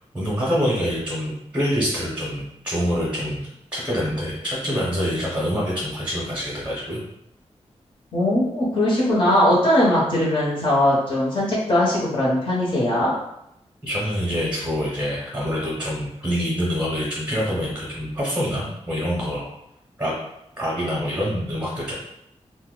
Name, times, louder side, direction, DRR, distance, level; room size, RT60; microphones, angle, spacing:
voice 1, 0.1-3.4 3.7-7.0 13.8-19.5 20.0-20.1 20.6-21.9, equal, 10° right, -6 dB, 0.8 m, -25 dB
voice 2, 8.1-13.1, left 1 dB, 50° left, -6 dB, 0.9 m, -20 dB
2.7 x 2.2 x 3.7 m, 0.80 s
wide cardioid pair, 180°, 11 cm